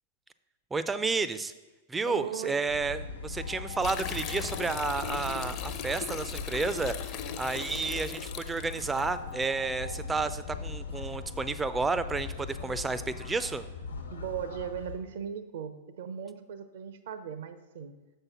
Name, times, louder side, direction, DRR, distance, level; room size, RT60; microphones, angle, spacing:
voice 1, 0.7-1.5 1.9-13.7, right 4 dB, 15° right, 13 dB, 0.4 m, -31 dB
voice 2, 2.1-2.6 14.1-17.9, right 8 dB, 65° right, 10 dB, 0.7 m, -38 dB
sound 1, 2.7-15.0, left 4 dB, 85° left, 1.1 m, -40 dB
sound 2, 3.8-9.0, left 9 dB, 40° left, 0.6 m, -39 dB
6.7 x 5.6 x 5.7 m, 1.2 s
figure-of-eight pair, 100°, 0 cm